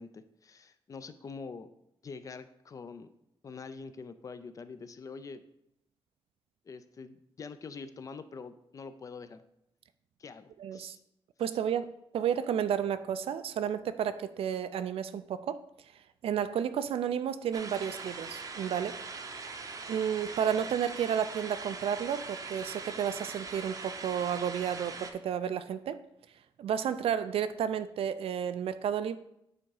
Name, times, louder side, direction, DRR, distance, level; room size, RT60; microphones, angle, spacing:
voice 1, 0.0-1.7 2.0-3.1 3.4-5.4 6.7-9.4 10.2-11.0, left 4 dB, 35° left, 11 dB, 0.4 m, -45 dB
voice 2, 10.6-11.0 11.4-15.6 16.2-19.0 19.9-26.0 26.6-29.2, right 8 dB, 80° right, 12 dB, 0.4 m, -32 dB
sound 1, 17.5-25.1, right 4 dB, 35° right, 0.7 m, -42 dB
8.8 x 3.6 x 4.8 m, 0.80 s
wide cardioid pair, 165°, 10 cm